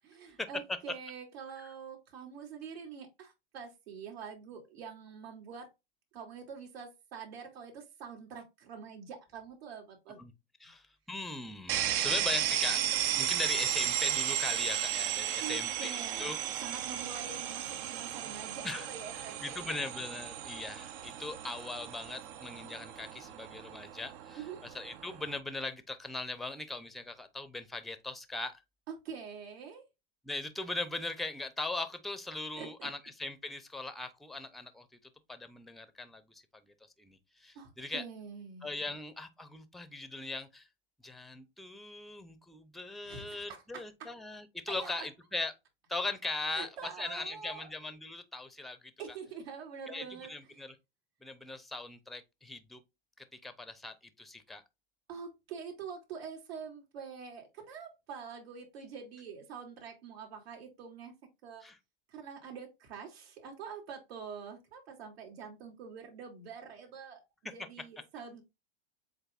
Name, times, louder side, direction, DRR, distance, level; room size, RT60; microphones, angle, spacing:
voice 1, 0.2-5.7 6.1-10.2 15.4-19.8 24.4-24.6 28.9-29.8 32.6-32.9 37.5-38.6 43.0-44.1 44.7-45.1 46.5-47.7 49.0-50.3 55.1-61.1 61.4-61.6 62.1-68.4, right 6 dB, 75° right, 2.9 m, -45 dB
voice 2, 10.6-16.4 18.6-18.9 19.2-24.4 24.7-28.5 30.2-34.9 35.3-36.4 37.0-38.0 38.6-40.7 41.0-45.5 45.9-48.9 49.9-50.7 51.2-52.8 53.4-54.6 61.6-61.8, left 2 dB, ahead, 0.6 m, -40 dB
sound 1, 11.7-25.4, right 11 dB, 60° right, 0.9 m, -35 dB
7.9 x 2.6 x 2.4 m
hypercardioid pair, 115°, 31 cm